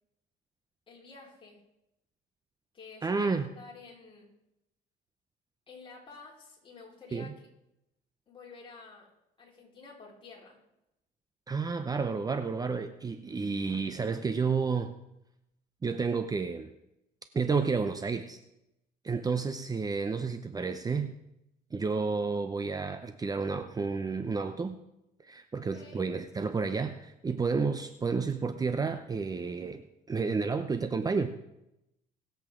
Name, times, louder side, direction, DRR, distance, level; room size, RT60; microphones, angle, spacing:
voice 1, 0.9-1.6 2.7-4.3 5.7-7.5 8.3-9.1 9.4-10.6 25.5-26.1, left 4 dB, 30° left, -4 dB, 4.5 m, -50 dB
voice 2, 3.0-3.4 7.1-7.3 11.5-14.9 15.8-16.7 17.3-18.4 19.0-21.1 21.7-24.8 25.2-29.8 30.1-31.3, right 4 dB, 20° right, 9 dB, 0.7 m, -31 dB
21.5 x 7.9 x 3.8 m, 0.87 s
cardioid pair, 110°, 17 cm